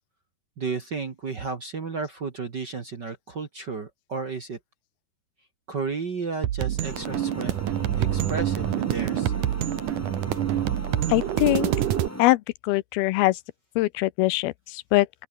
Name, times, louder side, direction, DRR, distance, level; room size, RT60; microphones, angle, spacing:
voice 1, 0.6-4.6 5.7-7.5 8.0-9.3, right 4 dB, 40° right, 1.6 m, -33 dB
sound 1, 6.4-12.1, right 12 dB, 65° right, 2.6 m, -26 dB
sound 2, 6.8-12.2, equal, 5° left, 3.9 m, -38 dB
voice 2, 11.1-11.7 12.2-13.4 13.8-15.1, left 19 dB, 90° left, 2.6 m, -22 dB
open air
omnidirectional pair, 4.4 m